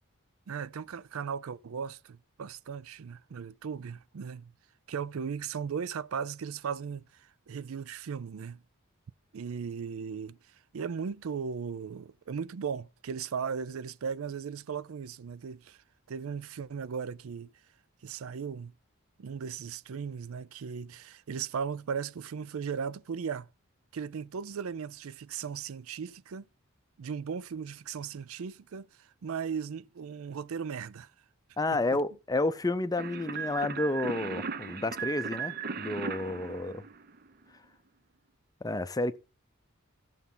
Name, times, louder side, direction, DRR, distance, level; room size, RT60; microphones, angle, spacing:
voice 1, 0.5-4.5 4.9-8.6 9.3-15.8 16.1-17.5 18.0-18.7 19.2-23.5 23.9-26.5 27.0-31.1 31.7-32.0, right 6 dB, 75° right, 0.4 m, -37 dB
voice 2, 31.6-36.8 38.6-39.2, left 2 dB, 15° left, 0.5 m, -30 dB
sound 1, 33.0-37.4, right 6 dB, 45° right, 0.7 m, -37 dB
15.0 x 7.0 x 3.8 m
head